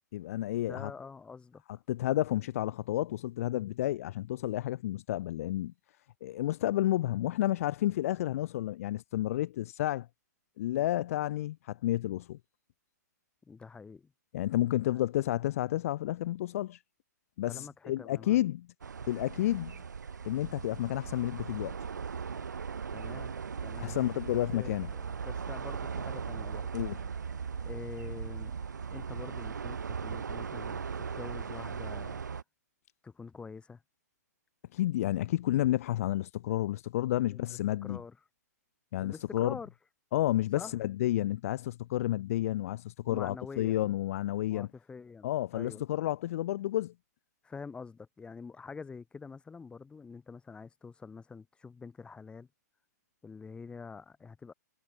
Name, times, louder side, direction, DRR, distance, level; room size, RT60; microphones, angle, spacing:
voice 1, 0.1-0.9 1.9-5.7 6.2-10.1 10.6-12.4 14.3-16.8 17.4-18.7 19.1-19.8 20.2-21.8 23.8-24.9 26.7-27.0 34.7-38.0 38.9-39.6 40.1-44.7 45.2-46.9, left 14 dB, 55° left, 0.5 m, -31 dB
voice 2, 0.7-1.6 13.4-14.1 14.9-15.0 17.5-18.4 22.9-23.4 23.6-24.0 24.3-26.7 27.6-28.6 28.9-32.2 33.0-33.8 37.3-37.4 37.8-38.2 39.0-39.7 40.5-40.8 43.1-43.9 44.5-45.8 47.4-52.5 53.2-54.5, left 5 dB, 10° left, 2.9 m, -46 dB
sound 1, 18.8-32.4, right 6 dB, 90° right, 1.1 m, -38 dB
hypercardioid pair, 130°, 9 cm